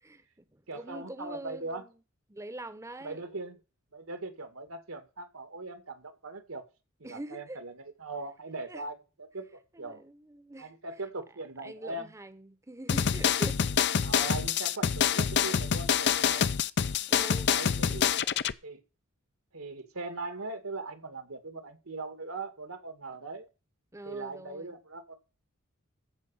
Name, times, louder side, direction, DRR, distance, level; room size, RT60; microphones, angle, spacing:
voice 1, 0.0-1.9 2.3-3.2 7.0-7.6 8.7-8.8 9.7-10.7 11.6-13.7 17.1-18.0 23.9-24.8, right 1 dB, 15° right, 0.9 m, -44 dB
voice 2, 0.7-1.8 3.0-3.6 3.9-6.6 7.0-10.0 10.6-12.1 14.0-16.5 17.5-18.1 18.6-18.8 19.5-23.5 24.0-25.2, right 2 dB, 85° right, 2.2 m, -40 dB
sound 1, 12.9-18.5, left 7 dB, 55° left, 0.6 m, -26 dB
15.0 x 5.2 x 7.1 m
head